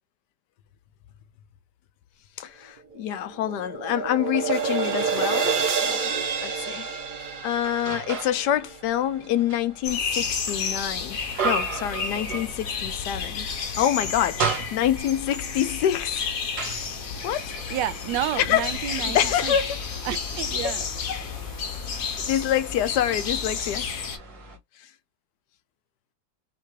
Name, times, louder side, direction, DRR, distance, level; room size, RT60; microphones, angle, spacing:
voice 1, 2.4-6.0 6.4-6.9 7.4-13.5 13.8-16.3 16.7-16.8 17.2-17.6 18.4-19.8 20.6-21.3 21.9-24.1 24.8-24.9, left 11 dB, 80° left, 1.2 m, -27 dB
sound 1, 2.9-9.2, right 5 dB, 45° right, 0.7 m, -28 dB
sound 2, 6.2-6.3 6.9-8.5 8.8-13.0 13.3-13.4 13.8-15.2 15.9-24.6, right 5 dB, 65° right, 2.1 m, -35 dB
sound 3, 9.8-24.2, left 6 dB, 60° left, 1.2 m, -31 dB
voice 2, 17.7-19.5 20.0-20.8, right 12 dB, 90° right, 1.2 m, -30 dB
5.6 x 2.3 x 3.1 m
omnidirectional pair, 1.8 m